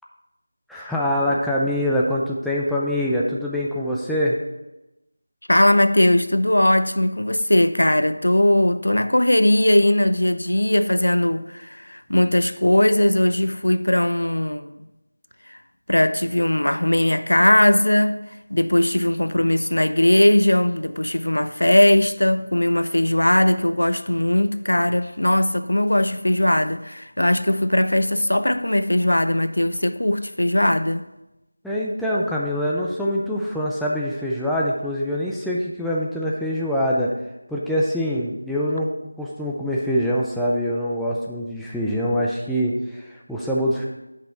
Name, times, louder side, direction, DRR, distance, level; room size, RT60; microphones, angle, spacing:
voice 1, 0.7-4.4 31.6-37.1 37.5-38.9 39.2-43.9, equal, ahead, 0.4 m, -24 dB
voice 2, 5.5-14.7 15.5-15.6 15.9-18.2 18.5-31.1, left 1 dB, 90° left, 0.6 m, -19 dB
9.1 x 5.7 x 4.3 m
figure-of-eight pair, 175°, 0 cm